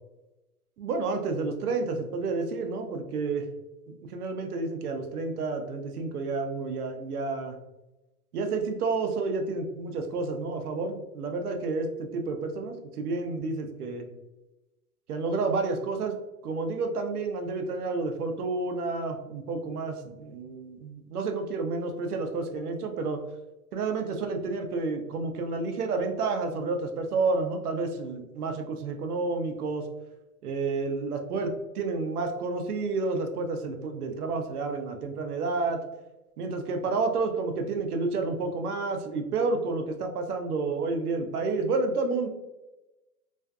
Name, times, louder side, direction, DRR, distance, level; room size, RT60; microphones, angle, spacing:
voice 1, 0.8-3.5 3.9-7.6 8.3-14.1 15.1-16.2 16.4-23.2 23.7-29.9 30.4-35.8 36.4-42.3, right 3 dB, 85° right, 5 dB, 0.6 m, -30 dB
2.5 x 2.3 x 2.3 m, 1.0 s
hypercardioid pair, 145°, 44 cm